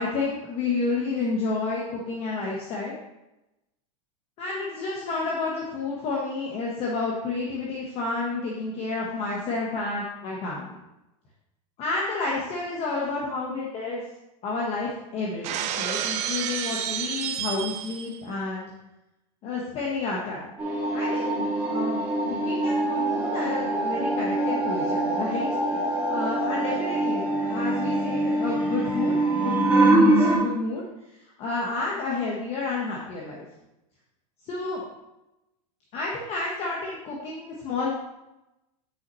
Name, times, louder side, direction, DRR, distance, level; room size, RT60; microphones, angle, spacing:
voice 1, 0.0-2.9 4.4-10.7 11.8-14.0 14.4-18.7 19.4-20.5 20.9-25.5 25.7-25.8 26.1-30.8 31.4-33.4 34.4-34.8 35.9-37.9, left 3 dB, 35° left, -3 dB, 1.2 m, -30 dB
Shatter, 15.4-18.2, right 9 dB, 35° right, 0.6 m, -30 dB
sound 1, 20.6-30.4, right 2 dB, 10° right, 2.2 m, -24 dB
9.1 x 5.7 x 3.1 m, 0.95 s
supercardioid pair, 145°, 19 cm